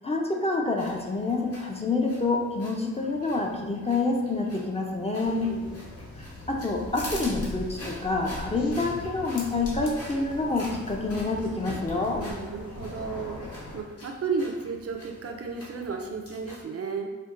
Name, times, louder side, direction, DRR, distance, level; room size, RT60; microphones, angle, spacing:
voice 1, 0.0-5.5 6.5-12.2, left 3 dB, 20° left, 0 dB, 0.4 m, -27 dB
sound 1, 0.8-16.6, left 1 dB, 55° left, 1.0 m, -46 dB
sound 2, 5.2-13.8, left 1 dB, 75° left, 0.7 m, -40 dB
voice 2, 5.2-5.9 12.1-17.2, right 4 dB, 55° right, 3 dB, 0.4 m, -34 dB
4.4 x 2.1 x 2.4 m, 1.3 s
cardioid pair, 55°, 29 cm